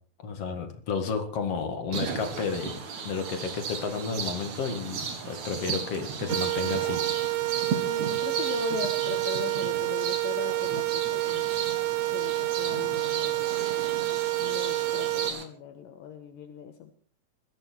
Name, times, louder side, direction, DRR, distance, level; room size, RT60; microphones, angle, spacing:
voice 1, 0.2-7.0, left 5 dB, 45° left, 6 dB, 2.6 m, -32 dB
sound 1, 1.9-15.4, right 6 dB, 55° right, 3.1 m, -35 dB
sound 2, 6.3-15.3, right 18 dB, 80° right, 3.1 m, -28 dB
voice 2, 7.9-11.6 12.0-13.6 14.4-16.9, left 8 dB, 70° left, 7 dB, 2.9 m, -39 dB
20.5 x 14.0 x 4.5 m, 0.43 s
omnidirectional pair, 4.3 m